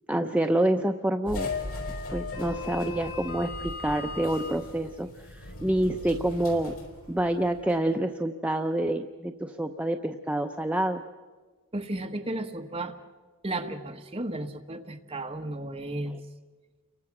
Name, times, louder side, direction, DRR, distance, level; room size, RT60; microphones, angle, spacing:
voice 1, 0.1-1.5 2.1-6.7 7.1-11.0, right 1 dB, 5° right, 4 dB, 0.7 m, -27 dB
sound 1, 1.2-7.8, left 3 dB, 90° left, 5.0 m, -37 dB
voice 2, 11.7-12.9 13.4-16.1, right 1 dB, 25° right, 4 dB, 1.4 m, -34 dB
29.5 x 23.5 x 6.0 m, 1.4 s
head